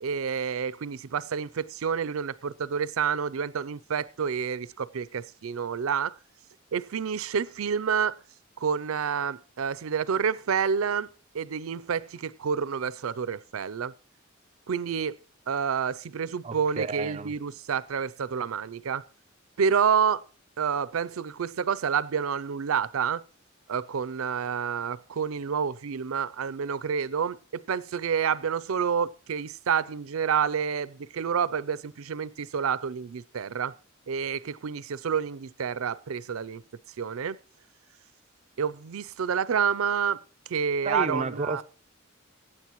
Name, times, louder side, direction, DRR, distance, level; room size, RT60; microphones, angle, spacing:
voice 1, 0.0-6.1 6.7-8.2 8.6-11.1 11.3-13.9 14.7-15.2 15.5-19.0 19.6-20.2 20.6-23.2 23.7-33.7 34.1-36.6 37.0-37.4 38.6-40.2 40.5-41.6, right 7 dB, 85° right, 0.5 m, -28 dB
voice 2, 16.4-17.3 40.8-41.6, right 3 dB, 30° right, 0.5 m, -31 dB
23.0 x 8.9 x 3.0 m
head